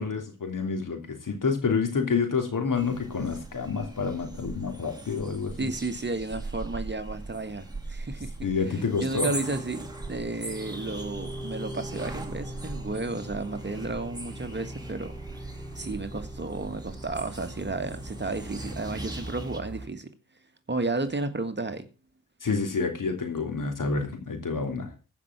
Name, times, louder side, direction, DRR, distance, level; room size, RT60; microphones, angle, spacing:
voice 1, 0.0-5.7 8.4-9.3 22.4-24.9, left 5 dB, 65° left, 3.2 m, -28 dB
sound 1, 2.7-19.6, right 2 dB, 10° right, 2.7 m, -40 dB
voice 2, 5.6-8.3 8.6-15.1 15.7-20.1 20.7-21.9, right 3 dB, 30° right, 1.6 m, -33 dB
sound 2, 8.9-19.9, right 1 dB, 10° left, 5.0 m, -41 dB
15.0 x 5.7 x 6.1 m
cardioid pair, 60°, 34 cm